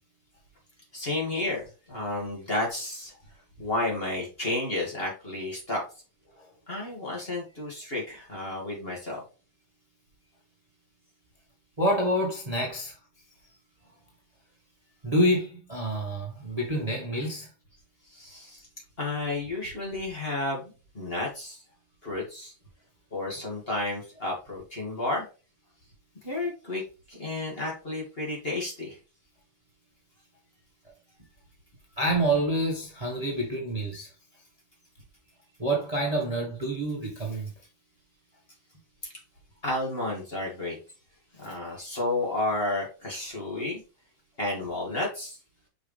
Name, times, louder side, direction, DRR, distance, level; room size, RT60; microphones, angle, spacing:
voice 1, 0.9-3.1 3.6-5.8 6.7-9.2 18.1-18.6 19.0-21.6 22.0-22.5 23.1-25.2 26.2-26.8 27.1-29.0 39.6-40.8 41.4-43.8 44.4-45.4, left 2 dB, 30° left, 2.5 m, -31 dB
voice 2, 11.8-12.9 15.0-17.5 32.0-34.1 35.6-37.5, right 1 dB, 20° right, 1.6 m, -27 dB
6.0 x 5.3 x 3.4 m
omnidirectional pair, 2.1 m